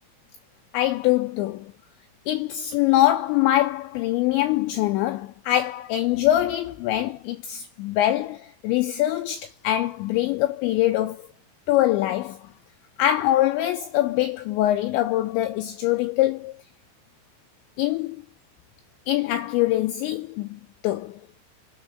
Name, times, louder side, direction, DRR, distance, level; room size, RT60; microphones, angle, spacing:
voice 1, 0.7-1.7 2.3-11.3 11.7-12.5 13.0-16.6 17.8-18.2 19.1-21.2, left 14 dB, 85° left, 2.6 m, -23 dB
9.7 x 3.7 x 6.0 m
omnidirectional pair, 5.8 m